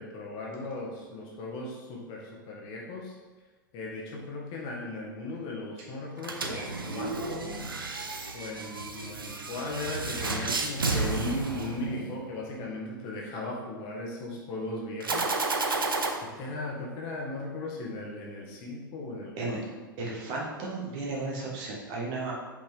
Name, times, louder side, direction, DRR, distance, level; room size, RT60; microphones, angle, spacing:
voice 1, 0.0-3.1 3.7-7.6 8.3-15.4 16.3-19.8, left 2 dB, 40° left, -2 dB, 1.5 m, -37 dB
sound 1, 6.2-12.3 15.0-16.1, right 3 dB, 75° right, 0.7 m, -32 dB
voice 2, 20.0-22.3, right 3 dB, 40° right, -3 dB, 1.7 m, -34 dB
5.4 x 5.4 x 3.6 m, 1.3 s
figure-of-eight pair, 95°, 12 cm